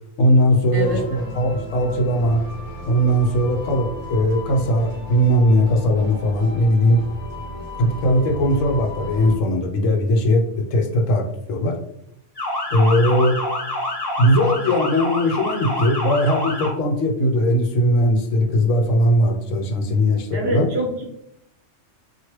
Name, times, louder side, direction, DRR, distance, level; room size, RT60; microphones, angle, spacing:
voice 1, 0.2-2.4 2.9-7.0 7.7-11.8 12.7-13.4 14.2-20.7, equal, 85° left, 3 dB, 1.0 m, -19 dB
voice 2, 0.7-1.2 20.3-21.0, equal, 50° right, -3 dB, 1.1 m, -25 dB
sound 1, 0.8-9.4, left 1 dB, 55° left, 0.9 m, -35 dB
Motor vehicle (road) / Siren, 12.4-16.7, left 1 dB, 20° left, 0.9 m, -27 dB
3.1 x 2.5 x 2.9 m, 0.75 s
omnidirectional pair, 1.3 m